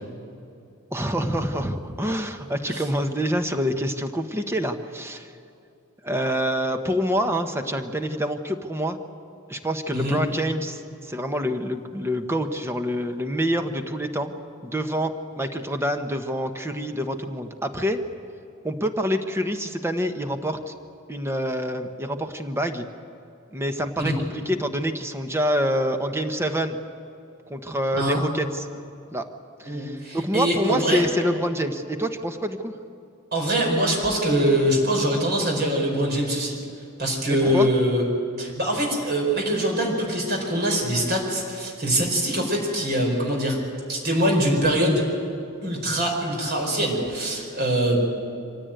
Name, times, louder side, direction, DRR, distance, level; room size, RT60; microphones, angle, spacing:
voice 1, 0.9-5.3 6.0-9.0 9.5-14.3 14.6-18.0 18.6-20.7 21.1-22.9 23.5-26.9 27.5-28.7 29.1-29.3 29.6-32.7 37.3-37.7, equal, 10° right, 7 dB, 1.2 m, -26 dB
voice 2, 29.6-31.0 33.3-36.6 37.0-38.0 38.4-43.6 43.9-45.1 45.6-48.0, right 1 dB, 50° right, 0 dB, 4.8 m, -23 dB
25.0 x 17.0 x 9.2 m, 2.6 s
head